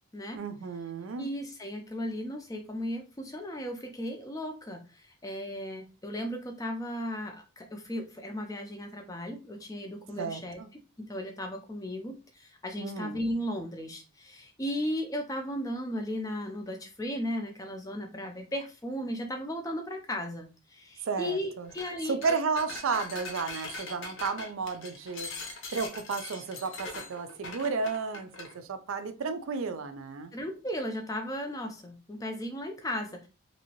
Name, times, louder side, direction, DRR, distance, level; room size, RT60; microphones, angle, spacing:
voice 1, 0.3-1.3 10.2-10.7 12.8-13.2 21.0-21.7 22.1-25.3 25.7-30.3, right 4 dB, 65° right, 0.4 m, -33 dB
voice 2, 1.2-10.6 11.0-22.2 30.3-33.3, equal, 15° left, 0.4 m, -36 dB
sound 1, 21.7-21.9 22.2-28.5, left 3 dB, 55° left, 0.7 m, -41 dB
2.9 x 2.7 x 2.8 m
head